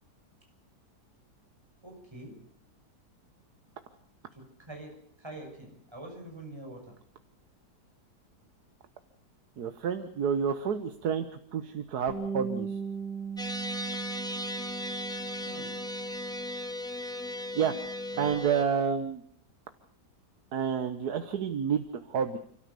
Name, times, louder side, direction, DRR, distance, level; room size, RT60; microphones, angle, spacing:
voice 1, 1.8-2.4 4.3-6.9 15.4-15.7 18.1-18.5, right 1 dB, 15° right, 1 dB, 6.2 m, -45 dB
voice 2, 9.6-11.3 11.5-12.8 17.5-17.7 18.2-19.2 20.5-22.4, right 7 dB, 70° right, 8 dB, 1.6 m, -29 dB
Bass guitar, 12.1-16.8 17.1-18.3, right 6 dB, 35° left, 4.0 m, -39 dB
sound 1, 13.4-18.6, left 1 dB, 5° left, 0.8 m, -37 dB
30.0 x 13.5 x 6.9 m, 0.64 s
omnidirectional pair, 1.8 m